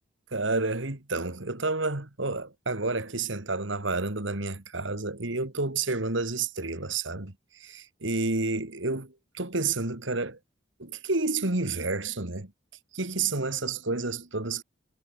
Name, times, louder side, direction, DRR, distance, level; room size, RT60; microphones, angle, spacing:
voice 1, 0.3-10.4 10.8-12.5 12.9-14.6, right 3 dB, 75° right, 2.4 m, -30 dB
head